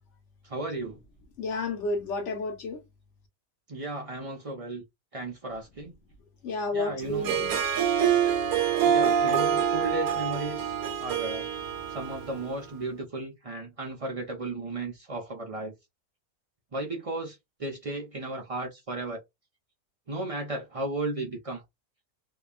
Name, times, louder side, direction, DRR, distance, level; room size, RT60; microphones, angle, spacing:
voice 1, 0.4-1.0 3.7-4.8 5.1-6.0 6.7-7.4 8.8-11.5 11.9-15.7 16.7-19.2 20.1-21.6, right 2 dB, 60° right, 0.3 m, -35 dB
voice 2, 1.4-2.8 6.4-7.6, left 2 dB, 60° left, 1.1 m, -31 dB
Harp, 7.1-12.6, right 8 dB, 80° right, 1.0 m, -26 dB
2.8 x 2.2 x 2.3 m
omnidirectional pair, 1.5 m